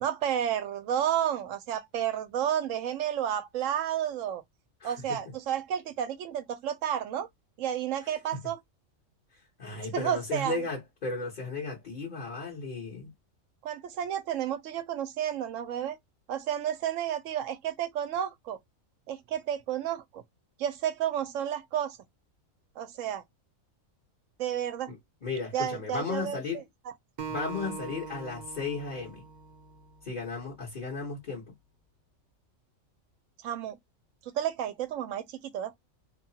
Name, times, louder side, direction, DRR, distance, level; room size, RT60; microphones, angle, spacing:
voice 1, 0.0-4.4 4.8-7.3 7.6-8.6 9.9-10.6 13.6-16.0 16.3-18.6 19.1-20.2 20.6-22.0 22.8-23.2 24.4-24.9 25.5-26.6 33.4-33.8 34.3-35.7, right 10 dB, 75° right, 0.9 m, -31 dB
voice 2, 4.8-5.2 9.6-13.1 24.9-26.6 27.3-29.2 30.0-31.4, left 4 dB, 40° left, 1.0 m, -35 dB
Acoustic guitar, 27.2-30.5, right 6 dB, 50° right, 0.6 m, -42 dB
2.8 x 2.3 x 2.7 m
omnidirectional pair, 1.4 m